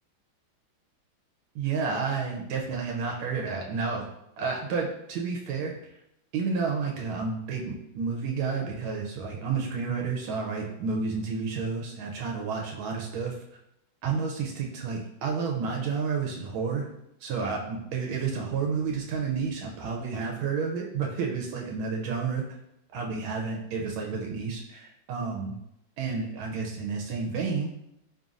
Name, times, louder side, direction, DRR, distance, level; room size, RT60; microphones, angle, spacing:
voice 1, 1.5-4.1 4.4-5.7 6.3-13.3 14.0-16.9 17.2-22.6 22.9-25.5 26.0-27.7, right 5 dB, 85° right, 0 dB, 1.4 m, -30 dB
3.9 x 3.6 x 2.4 m, 0.81 s
omnidirectional pair, 2.3 m